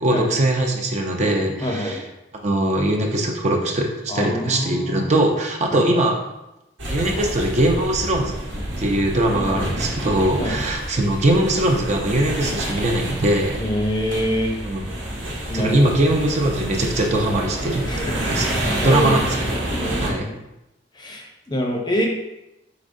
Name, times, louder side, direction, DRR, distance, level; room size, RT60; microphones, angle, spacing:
voice 1, 0.0-2.0 2.4-6.2 6.9-8.4 8.8-13.6 14.6-14.9 15.5-17.8 18.3-18.4 18.8-19.4 20.0-20.3, right 1 dB, 35° right, 2 dB, 0.5 m, -21 dB
voice 2, 1.6-2.0 4.1-5.3 5.7-5.8 9.3-9.5 10.4-10.6 13.6-14.5 15.5-16.0 17.8-18.5 18.8-19.2 19.7-20.4 20.9-22.1, equal, 25° left, 1 dB, 0.6 m, -26 dB
sound 1, 6.8-20.1, right 1 dB, 90° right, 1.1 m, -28 dB
4.9 x 4.1 x 2.6 m, 0.92 s
head